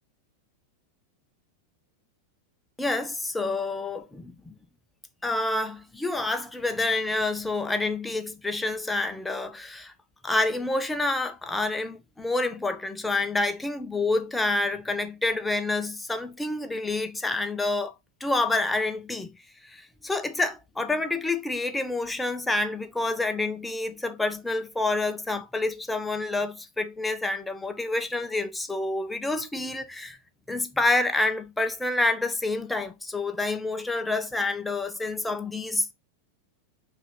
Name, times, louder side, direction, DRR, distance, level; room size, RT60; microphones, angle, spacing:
voice 1, 2.8-4.5 5.2-9.9 10.2-17.9 18.2-19.3 19.6-30.2 30.5-35.9, left 2 dB, 5° left, 0.6 m, -28 dB
5.2 x 2.7 x 3.6 m
figure-of-eight pair, 90°, 0 cm